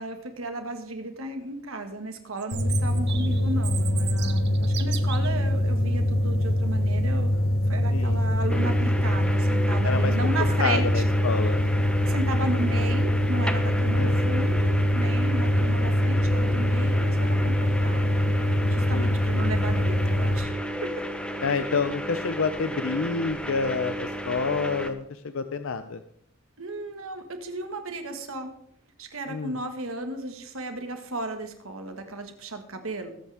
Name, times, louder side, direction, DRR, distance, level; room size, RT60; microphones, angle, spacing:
voice 1, 0.0-7.3 7.7-11.0 12.0-18.3 18.7-20.5 20.8-21.0 26.6-28.5 29.0-33.1, right 2 dB, 70° right, 6 dB, 1.9 m, -34 dB
Chirp tweet, 2.4-5.4, right 11 dB, 50° right, 1.0 m, -37 dB
sound 1, 2.5-20.4, left 1 dB, 45° left, 2.0 m, -24 dB
sound 2, 8.5-24.9, equal, 5° left, 0.8 m, -32 dB
voice 2, 10.4-11.6 13.9-14.2 18.9-19.5 21.4-26.0 29.3-29.6, left 4 dB, 65° left, 10 dB, 0.6 m, -28 dB
20.5 x 8.4 x 3.6 m, 0.69 s
head